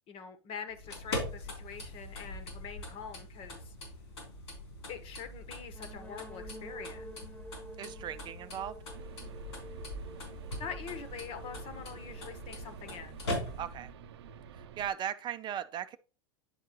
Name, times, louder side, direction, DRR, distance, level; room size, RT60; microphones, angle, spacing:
voice 1, 0.1-3.7 4.9-7.1 10.6-13.2, left 7 dB, 45° left, 1.3 m, -44 dB
sound 1, 0.7-13.9, left 1 dB, 80° left, 3.4 m, -42 dB
sound 2, 5.7-13.4, right 1 dB, 10° left, 1.2 m, -51 dB
voice 2, 7.8-8.7 13.6-13.9 14.5-16.0, right 10 dB, 35° right, 0.5 m, -38 dB
sound 3, 8.9-14.9, right 5 dB, 80° right, 0.6 m, -48 dB
9.9 x 4.5 x 3.1 m
hypercardioid pair, 100°, 14 cm